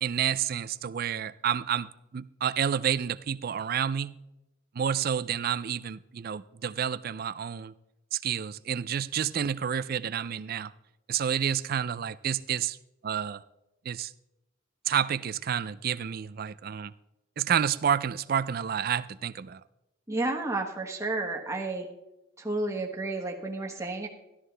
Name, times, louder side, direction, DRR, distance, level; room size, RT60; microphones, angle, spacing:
voice 1, 0.0-4.2 4.7-7.7 8.1-10.7 11.1-12.8 13.0-13.4 13.9-14.1 14.9-16.9 17.4-19.6, right 8 dB, 50° right, 0.4 m, -29 dB
voice 2, 20.1-21.9 22.4-24.1, right 2 dB, 15° right, 1.3 m, -31 dB
13.0 x 12.5 x 3.3 m
head